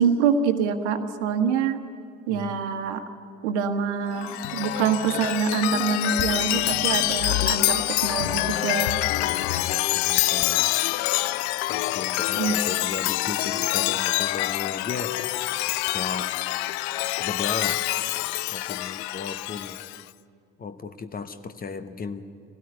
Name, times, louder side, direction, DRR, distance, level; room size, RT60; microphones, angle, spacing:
voice 1, 0.0-1.8 2.3-3.0 3.4-9.0 12.4-12.5, right 7 dB, 65° right, 8 dB, 1.4 m, -25 dB
Chime, 4.1-20.0, left 17 dB, 55° left, 0.6 m, -26 dB
voice 2, 9.2-10.7 11.7-15.1 15.9-16.3 17.2-17.8 18.5-19.8 20.6-22.3, left 5 dB, 25° left, 11 dB, 1.0 m, -35 dB
24.5 x 17.5 x 9.4 m, 2.5 s
figure-of-eight pair, 60°, 38 cm